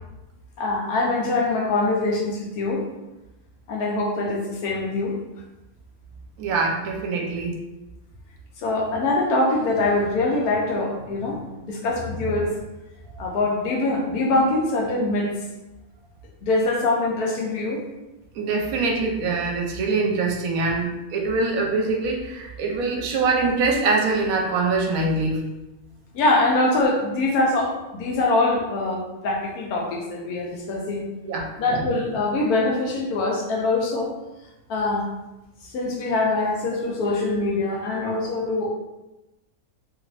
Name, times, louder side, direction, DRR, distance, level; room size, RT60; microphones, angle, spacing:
voice 1, 0.6-2.9 3.7-5.2 8.6-12.5 13.2-15.3 16.4-17.8 26.1-31.1 31.6-34.1 34.7-35.1 35.7-38.7, left 2 dB, 80° left, 0 dB, 1.2 m, -23 dB
voice 2, 6.4-7.6 12.1-12.2 18.3-25.4 31.2-31.5, right 3 dB, 75° right, 0 dB, 1.0 m, -24 dB
3.0 x 2.5 x 3.1 m, 1.0 s
omnidirectional pair, 1.6 m